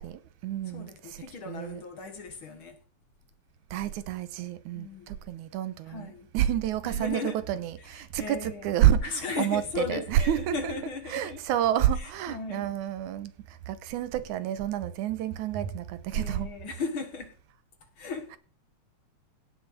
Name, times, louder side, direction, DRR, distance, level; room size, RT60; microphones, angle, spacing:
voice 1, 0.0-1.8 3.7-9.6 9.9-10.7 11.1-13.3 13.7-16.5, right 11 dB, 85° right, 2.4 m, -29 dB
voice 2, 0.7-2.8 4.7-5.2 5.9-6.3 6.8-7.4 7.8-8.8 9.0-11.4 12.0-12.7 16.1-17.4 18.0-18.4, left 4 dB, 50° left, 2.1 m, -37 dB
16.5 x 6.5 x 6.1 m
omnidirectional pair, 3.4 m